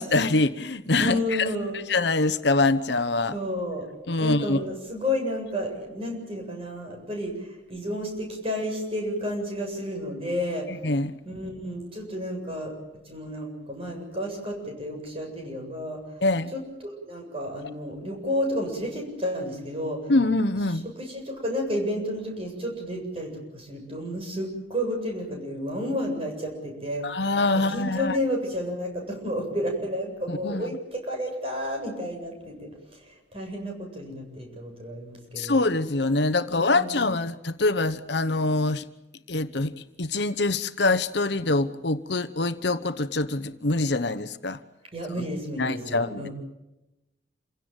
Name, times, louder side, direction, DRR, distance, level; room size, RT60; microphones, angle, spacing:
voice 1, 0.0-1.5 1.9-3.3 4.1-4.6 10.7-11.1 16.2-16.5 20.1-20.8 27.0-28.2 30.3-30.6 35.4-38.8 39.3-44.6 45.6-46.3, left 2 dB, 65° left, 1.1 m, -24 dB
voice 2, 1.0-1.8 3.3-3.9 4.2-10.7 11.2-12.7 13.0-16.0 16.5-20.1 21.0-35.6 36.5-37.0 44.9-46.3, equal, 30° right, 7.7 m, -31 dB
28.0 x 17.0 x 9.1 m
head